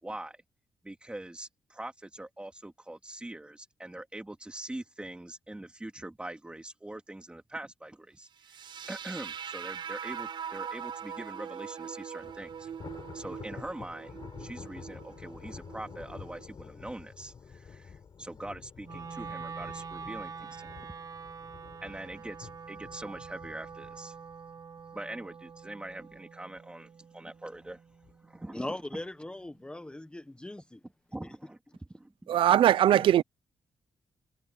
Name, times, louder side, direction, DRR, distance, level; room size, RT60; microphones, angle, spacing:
voice 1, 0.0-0.4 0.8-8.3 8.8-12.7 13.1-20.8 21.8-24.1 24.9-27.8 28.2-28.7 31.1-31.6 31.9-32.5 32.9-33.0, right 1 dB, 10° right, 3.3 m, -43 dB
sound 1, 8.4-16.4, right 7 dB, 65° right, 5.5 m, -42 dB
Thunder, 12.2-25.5 25.9-26.2 26.6-26.7 27.5-28.1, left 6 dB, 50° left, 6.8 m, -49 dB
Wind instrument woodwind instrument, 18.8-29.0, right 5 dB, 40° right, 0.9 m, -45 dB
voice 2, 28.5-30.8 31.2-31.3, left 1 dB, 10° left, 1.3 m, -39 dB
voice 3, 32.3-33.2, right 11 dB, 80° right, 0.5 m, -21 dB
cardioid pair, 110°, 9 cm